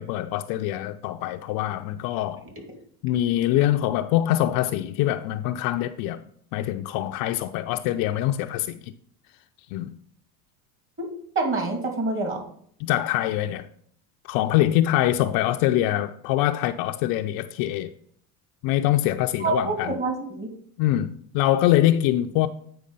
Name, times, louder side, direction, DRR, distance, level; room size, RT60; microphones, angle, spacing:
voice 1, 0.0-2.5 3.0-6.2 6.5-8.9 9.7-10.0 12.8-13.7 14.2-17.9 18.6-20.0 20.8-22.5, left 13 dB, 50° left, 0.5 m, -24 dB
voice 2, 11.4-12.4 19.4-20.5, right 3 dB, 30° right, 2.4 m, -26 dB
8.7 x 4.8 x 5.3 m
supercardioid pair, 120°, 45 cm